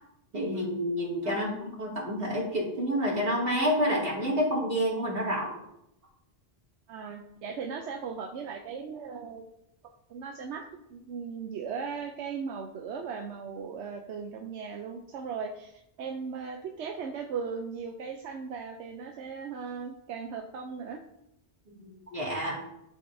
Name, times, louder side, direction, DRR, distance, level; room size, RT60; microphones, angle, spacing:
voice 1, 0.3-1.5 1.8-5.6 21.7-22.6, equal, 60° right, -4 dB, 2.5 m, -29 dB
voice 2, 1.2-1.6 6.9-9.4 10.1-10.6 10.9-21.0, right 6 dB, 90° right, 4 dB, 0.9 m, -37 dB
11.5 x 5.2 x 2.6 m, 0.82 s
omnidirectional pair, 1.1 m